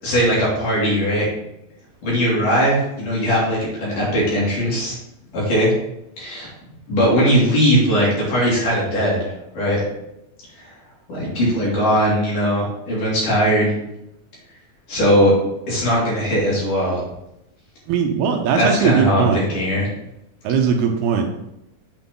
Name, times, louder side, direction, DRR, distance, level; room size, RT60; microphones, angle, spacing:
voice 1, 0.0-1.3 2.0-4.9 5.3-5.7 6.2-6.5 6.9-9.8 10.6-10.7 11.1-13.7 14.9-15.3 15.7-17.0 18.4-19.9, equal, 50° left, -6 dB, 4.3 m, -19 dB
voice 2, 17.9-19.4 20.4-21.3, right 6 dB, 80° right, 4 dB, 2.7 m, -19 dB
8.1 x 6.4 x 3.9 m, 0.84 s
omnidirectional pair, 4.7 m